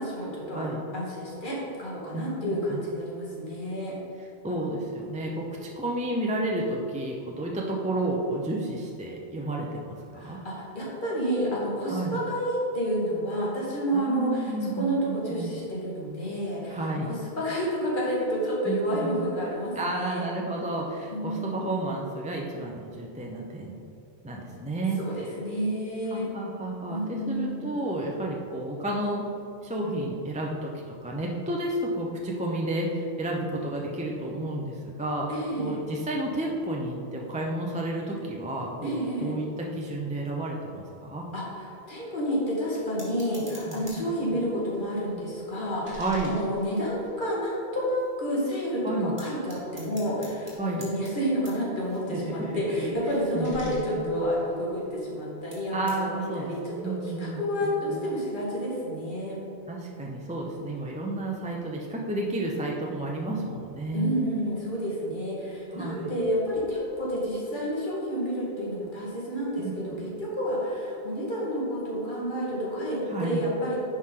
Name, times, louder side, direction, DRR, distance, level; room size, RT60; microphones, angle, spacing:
voice 1, 0.0-0.6 0.9-3.9 10.2-20.2 21.1-21.6 25.0-26.3 26.9-27.7 35.3-35.8 38.8-39.3 41.3-59.4 63.9-73.8, equal, 50° left, -5 dB, 1.9 m, -30 dB
voice 2, 2.1-2.8 4.2-10.4 11.9-12.2 13.9-15.6 16.7-17.1 18.6-19.3 19.8-23.8 24.2-25.0 26.1-29.3 29.6-41.3 43.7-44.4 45.9-46.3 48.8-49.2 50.6-50.9 52.1-52.5 52.8-52.9 53.3-54.1 55.7-58.0 59.7-64.1 65.7-66.1 69.6-70.1 73.1-73.5, right 1 dB, 10° right, -2 dB, 0.5 m, -31 dB
sound 1, 43.0-44.3 44.7-47.5 48.0-48.1 48.3-48.7 49.2-55.2 55.5-56.0, equal, 30° right, 1.7 m, -49 dB
10.0 x 4.8 x 3.8 m, 2.7 s
omnidirectional pair, 1.1 m